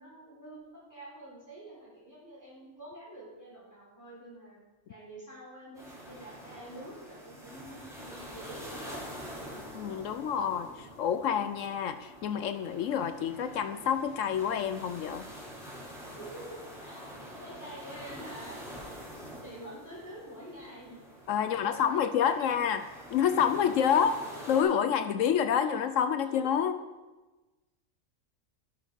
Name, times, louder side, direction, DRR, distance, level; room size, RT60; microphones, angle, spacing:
voice 1, 0.0-4.6 4.9-9.1 16.1-17.1 17.4-18.6 19.4-21.0 21.4-22.6 23.8-24.2 25.6-25.7 26.3-26.4, right 1 dB, 15° left, -6 dB, 4.2 m, -47 dB
sound 1, 5.7-24.6, equal, ahead, 4.2 m, -46 dB
voice 2, 9.7-15.3 21.3-22.8 23.1-24.1 24.5-26.8, left 8 dB, 75° left, 10 dB, 0.9 m, -28 dB
11.0 x 7.4 x 5.2 m, 1.2 s
omnidirectional pair, 1.4 m